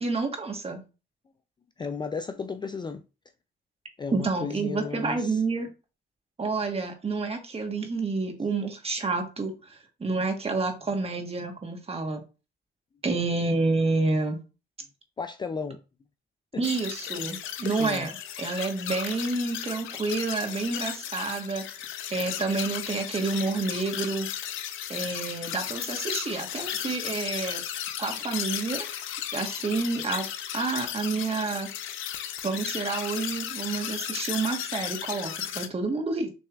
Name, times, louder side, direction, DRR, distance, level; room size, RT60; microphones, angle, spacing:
voice 1, 0.0-0.8 4.1-5.7 6.4-12.2 13.0-14.4 16.6-21.7 22.1-24.3 24.9-27.6 28.0-28.9 29.3-30.3 30.5-31.7 32.4-36.3, right 3 dB, 30° right, 1.2 m, -29 dB
voice 2, 1.8-3.0 4.0-5.4 15.2-15.8 16.5-16.6 17.7-18.1, left 5 dB, 20° left, 0.3 m, -34 dB
sound 1, 16.6-35.7, left 10 dB, 90° left, 0.6 m, -35 dB
6.2 x 3.2 x 2.3 m
cardioid pair, 90°, 20 cm